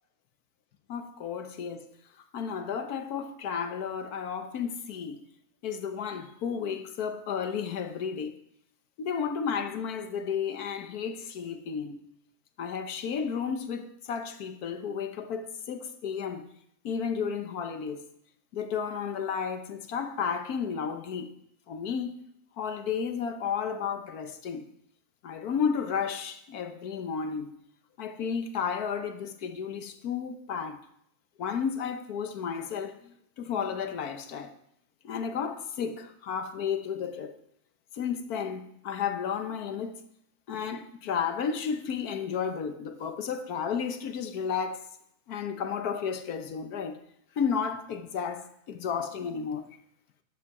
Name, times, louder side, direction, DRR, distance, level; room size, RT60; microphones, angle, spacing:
voice 1, 0.9-1.9 2.3-5.2 5.6-8.4 9.0-12.0 12.6-16.5 16.8-18.0 18.5-21.3 21.7-22.1 22.6-24.7 25.2-27.5 28.0-30.8 31.4-34.5 35.0-37.4 37.9-40.0 40.5-44.8 45.3-47.0 47.4-49.8, left 6 dB, 80° left, 1.5 m, -32 dB
12.0 x 8.4 x 4.8 m
omnidirectional pair, 1.6 m